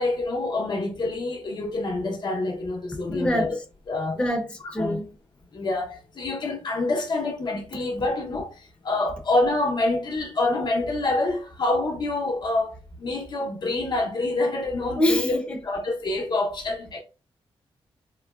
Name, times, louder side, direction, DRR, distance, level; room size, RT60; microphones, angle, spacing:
voice 1, 0.0-3.6 3.9-4.2 4.6-5.0 5.5-8.5 8.8-17.0, left 2 dB, 45° left, 0.7 m, -26 dB
voice 2, 3.1-3.5 4.2-5.1 15.0-15.6, left 1 dB, 10° left, 0.7 m, -25 dB
3.6 x 2.1 x 2.3 m
cardioid pair, 110°, 10 cm